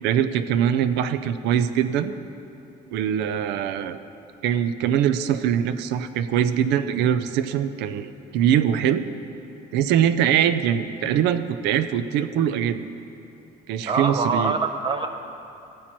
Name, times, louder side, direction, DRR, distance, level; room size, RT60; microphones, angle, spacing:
voice 1, 0.0-2.1 2.9-4.0 4.4-9.0 9.7-12.9 13.7-14.6, right 9 dB, 90° right, 11 dB, 0.5 m, -22 dB
voice 2, 13.9-15.1, right 4 dB, 30° right, 6 dB, 0.4 m, -24 dB
14.5 x 8.5 x 3.0 m, 2.8 s
cardioid pair, 110°, 17 cm